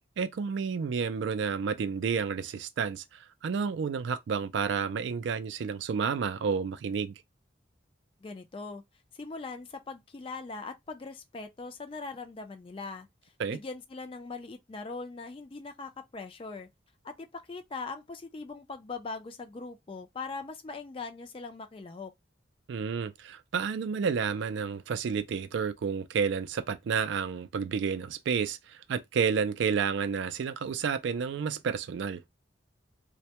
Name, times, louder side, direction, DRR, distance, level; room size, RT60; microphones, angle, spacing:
voice 1, 0.2-7.1 13.4-13.6 22.7-32.2, right 6 dB, 65° right, 0.3 m, -30 dB
voice 2, 8.2-8.8 9.1-16.7 17.0-22.1, left 4 dB, 30° left, 0.3 m, -41 dB
2.2 x 2.1 x 2.8 m
head